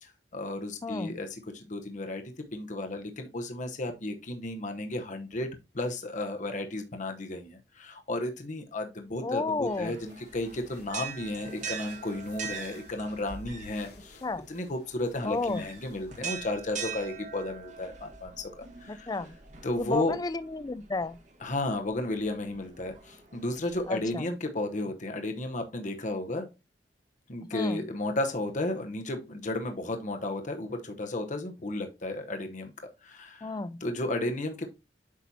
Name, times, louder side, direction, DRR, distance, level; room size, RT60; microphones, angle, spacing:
voice 1, 0.0-1.3 1.5-2.2 2.5-5.5 5.7-14.2 14.5-19.1 19.6-20.2 21.4-26.5 27.3-32.7 33.0-33.5 33.8-34.7, left 2 dB, 45° left, 0.9 m, -33 dB
voice 2, 0.8-1.2 9.2-10.0 14.2-14.5 15.2-15.7 18.9-19.3 19.8-21.2 23.9-24.3 27.5-27.8 33.4-33.8, left 3 dB, 20° left, 0.4 m, -32 dB
sound 1, 9.5-17.7, left 1 dB, 65° left, 1.7 m, -54 dB
sound 2, 9.7-24.1, right 6 dB, 45° right, 1.5 m, -43 dB
8.3 x 5.8 x 2.7 m
head